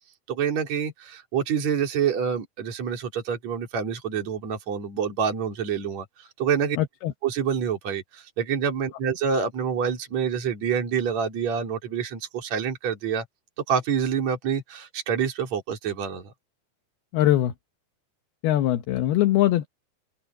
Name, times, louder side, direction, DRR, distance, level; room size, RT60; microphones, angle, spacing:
voice 1, 0.3-6.8 7.2-13.3 13.7-16.3, right 7 dB, 45° right, 4.5 m, -27 dB
voice 2, 6.8-7.1 17.1-17.5 18.4-19.7, left 13 dB, 75° left, 3.0 m, -21 dB
open air
omnidirectional pair, 4.6 m